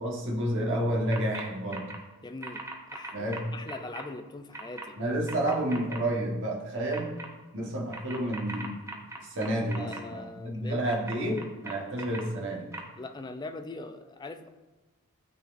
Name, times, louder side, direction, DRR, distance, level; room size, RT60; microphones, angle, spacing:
voice 1, 0.0-1.9 3.1-3.4 5.0-7.1 7.5-8.7 9.3-11.4 11.6-12.7, right 1 dB, 60° right, -1 dB, 1.3 m, -30 dB
sound 1, 1.1-1.4 1.7-2.0 2.4-4.0 4.5-4.9 5.3-6.0 6.9-7.3 7.9-10.0 10.9-12.2 12.7-12.8, right 3 dB, 15° right, 0.7 m, -39 dB
voice 2, 2.2-2.6 2.9-5.0 9.7-11.5 13.0-14.5, left 2 dB, 20° left, 7 dB, 0.4 m, -41 dB
12.0 x 4.1 x 2.5 m, 1.2 s
head